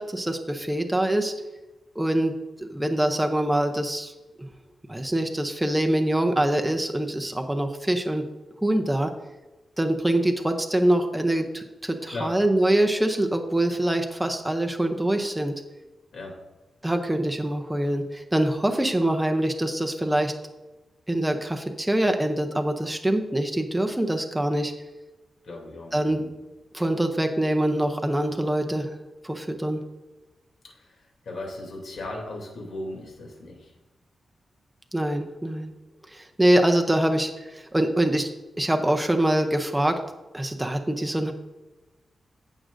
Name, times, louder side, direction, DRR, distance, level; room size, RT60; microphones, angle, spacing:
voice 1, 0.0-1.3 2.0-4.1 4.9-8.2 8.6-9.1 9.8-15.5 16.8-20.3 21.1-24.7 25.9-26.2 26.7-28.9 29.2-29.8 34.9-35.7 36.1-38.3 38.6-40.0 40.3-41.3, right 1 dB, 5° right, 4 dB, 0.6 m, -24 dB
voice 2, 25.5-26.3 31.2-33.6, left 2 dB, 65° left, 0 dB, 2.9 m, -36 dB
15.5 x 6.2 x 2.6 m, 1.1 s
wide cardioid pair, 170°, 0 cm